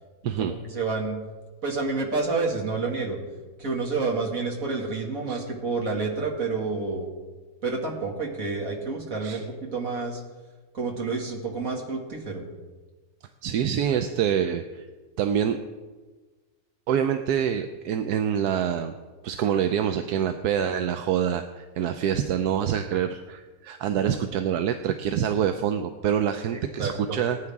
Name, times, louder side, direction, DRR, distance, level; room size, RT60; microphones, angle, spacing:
voice 1, 0.2-1.2 1.6-3.2 3.6-7.1 7.6-10.2 10.7-12.4 13.9-14.0 26.5-27.2, right 4 dB, 60° right, -1 dB, 2.6 m, -29 dB
voice 2, 13.4-14.9 15.2-15.6 16.9-18.9 19.2-27.4, right 9 dB, 85° right, 8 dB, 1.2 m, -26 dB
19.5 x 9.8 x 3.6 m, 1.3 s
omnidirectional pair, 1.6 m